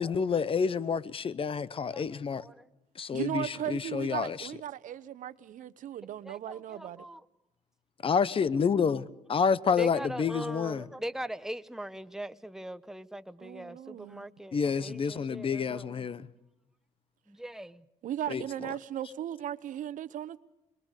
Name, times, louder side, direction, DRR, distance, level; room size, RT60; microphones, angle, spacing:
voice 1, 0.0-2.4 3.0-4.5 8.0-9.0 9.3-10.8 14.5-16.3 18.3-18.4, left 6 dB, 40° left, 1.0 m, -28 dB
voice 2, 1.8-2.7 6.2-7.2 9.8-16.1 17.3-17.9, right 1 dB, 5° right, 1.0 m, -41 dB
voice 3, 3.1-7.0 13.4-14.3 18.0-20.4, right 11 dB, 70° right, 1.0 m, -37 dB
26.5 x 22.0 x 6.6 m
cardioid pair, 95°, 14 cm